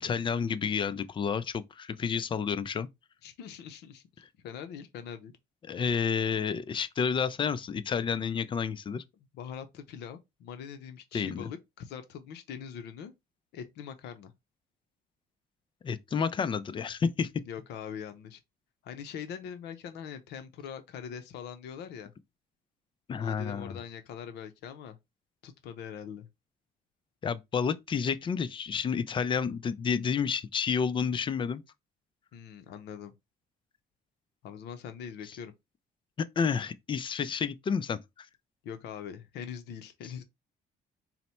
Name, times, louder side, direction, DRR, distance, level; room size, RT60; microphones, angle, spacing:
voice 1, 0.0-2.9 5.6-9.0 11.1-11.5 15.8-17.3 23.1-23.7 27.2-31.6 36.4-38.3, left 6 dB, 30° left, 0.4 m, -30 dB
voice 2, 3.2-4.0 4.4-5.3 9.3-13.1 13.5-14.3 17.5-18.4 18.8-22.1 23.2-25.0 25.4-26.3 32.3-33.1 34.4-35.5 38.6-40.2, left 8 dB, 80° left, 0.6 m, -42 dB
4.1 x 2.1 x 4.2 m
cardioid pair, 110°, 17 cm